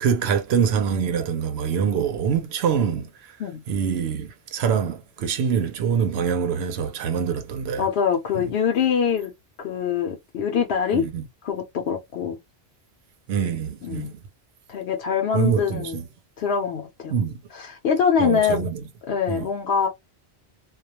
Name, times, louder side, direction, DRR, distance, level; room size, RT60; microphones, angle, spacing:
voice 1, 0.0-3.3 3.7-7.9 8.3-8.5 10.9-11.2 13.3-14.2 15.3-16.1 17.1-17.4 18.2-18.8 19.3-19.5, right 7 dB, 75° right, 0.8 m, -25 dB
voice 2, 7.8-9.3 9.6-11.0 11.4-12.4 13.8-14.1 14.7-16.0 16.4-17.1 17.5-18.6 19.1-19.9, left 7 dB, 75° left, 0.8 m, -24 dB
2.3 x 2.2 x 2.8 m
omnidirectional pair, 1.1 m